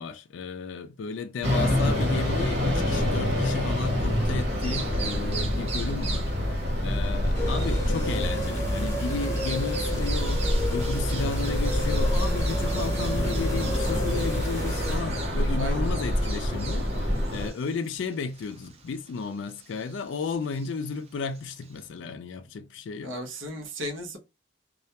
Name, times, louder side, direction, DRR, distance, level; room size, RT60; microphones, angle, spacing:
voice 1, 0.0-23.1, left 4 dB, 65° left, 0.3 m, -34 dB
sound 1, 1.4-17.5, equal, 50° right, 0.9 m, -27 dB
Bird vocalization bird call bird song, 4.5-21.9, right 5 dB, 30° right, 0.5 m, -43 dB
Resonating Analog Drone, 7.3-15.0, equal, 15° left, 0.7 m, -31 dB
voice 2, 15.6-15.9 23.0-24.2, equal, 75° right, 0.7 m, -35 dB
2.3 x 2.1 x 2.7 m
head